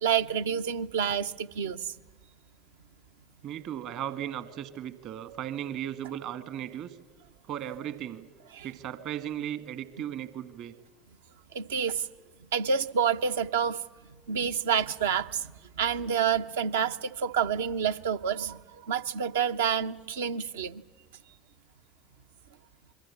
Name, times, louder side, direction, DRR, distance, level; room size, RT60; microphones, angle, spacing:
voice 1, 0.0-1.9 8.5-8.7 11.5-12.1 12.5-13.8 14.3-20.8, right 7 dB, 75° right, 0.8 m, -28 dB
voice 2, 3.4-7.0 7.5-8.3 8.6-10.7, right 10 dB, 55° right, 1.7 m, -36 dB
27.0 x 22.5 x 7.2 m
figure-of-eight pair, 65°, 0 cm